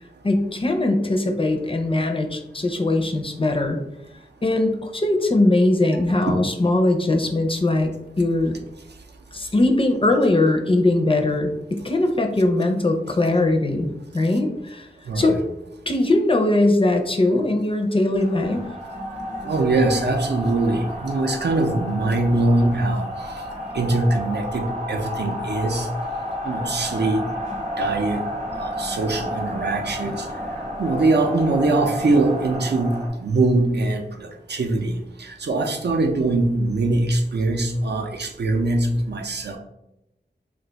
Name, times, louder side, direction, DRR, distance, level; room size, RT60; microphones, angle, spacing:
voice 1, 0.2-3.8 4.4-7.9 8.2-8.5 9.3-14.9 15.2-15.4 15.9-18.6, left 2 dB, 30° left, 3 dB, 0.4 m, -20 dB
voice 2, 15.1-15.4 19.4-23.1 23.7-25.9 26.4-27.2 27.8-28.2 28.6-30.3 30.8-39.6, right 2 dB, 70° right, 3 dB, 0.4 m, -22 dB
sound 1, 18.1-33.1, left 1 dB, 40° right, 0.7 m, -31 dB
2.4 x 2.2 x 3.9 m, 0.89 s
wide cardioid pair, 60°, 18 cm